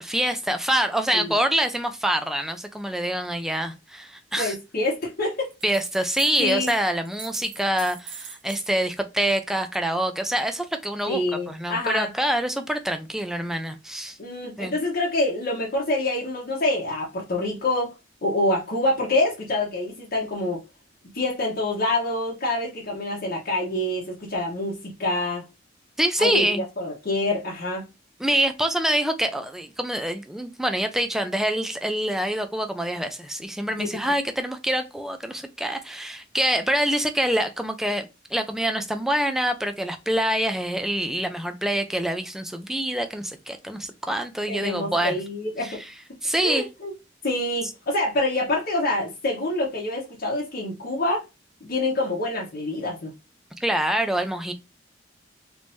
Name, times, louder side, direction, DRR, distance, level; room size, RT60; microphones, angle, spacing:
voice 1, 0.0-4.6 5.6-14.2 14.6-14.7 26.0-26.6 28.2-45.2 45.6-45.9 46.2-46.7 53.6-54.5, right 1 dB, ahead, 0.4 m, -26 dB
voice 2, 4.4-5.5 6.4-6.7 11.1-12.1 14.2-17.9 18.2-20.6 21.1-25.4 26.2-27.9 33.8-34.1 44.5-45.8 46.4-46.9 47.2-51.2 51.6-53.1, left 2 dB, 55° left, 1.0 m, -26 dB
sound 1, 5.4-6.8 7.1-8.8, right 6 dB, 65° right, 1.0 m, -40 dB
3.5 x 3.1 x 2.6 m
head